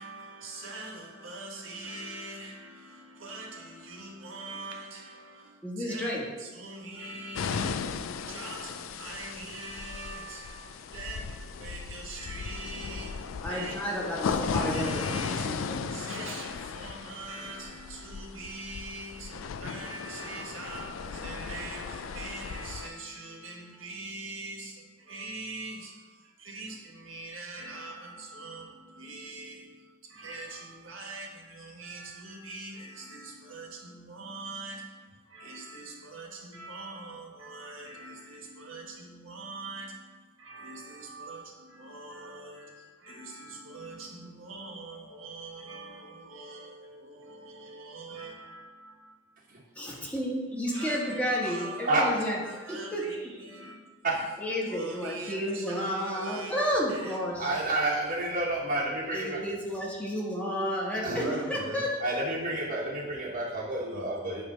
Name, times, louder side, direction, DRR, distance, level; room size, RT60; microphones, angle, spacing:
voice 1, 0.0-13.8 14.3-49.2 50.7-53.9 54.7-56.6 56.9-57.2 57.5-57.8 61.1-61.8 63.9-64.4, right 2 dB, 75° right, -1 dB, 1.5 m, -43 dB
voice 2, 5.6-6.2 13.4-15.9 49.7-52.4 52.7-53.3 54.4-57.5 59.1-61.9, equal, 5° left, -4 dB, 1.3 m, -31 dB
sound 1, 7.4-22.9, left 5 dB, 75° left, 0.4 m, -36 dB
voice 3, 57.4-59.4 61.0-61.2 62.0-64.4, right 2 dB, 45° right, -6 dB, 1.2 m, -29 dB
8.7 x 3.4 x 5.3 m, 1.4 s
head